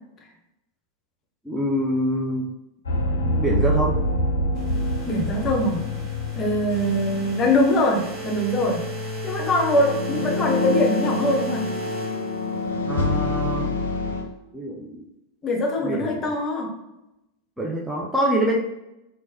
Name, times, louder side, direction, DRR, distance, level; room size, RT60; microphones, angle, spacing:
voice 1, 1.4-2.5 3.2-4.0 12.9-13.7 14.5-15.1 15.8-16.2 17.6-18.6, right 1 dB, 5° right, -3 dB, 0.4 m, -25 dB
sound 1, 2.9-7.7 8.0-8.2 9.6-14.2, left 1 dB, 70° left, 0.5 m, -26 dB
sound 2, 4.5-12.9, left 1 dB, 35° right, 1.2 m, -34 dB
voice 2, 5.0-5.8 6.3-8.8 9.2-11.6 15.4-16.7, left 1 dB, 25° left, 0 dB, 0.7 m, -22 dB
3.0 x 2.2 x 2.7 m, 0.90 s
figure-of-eight pair, 90°, 0 cm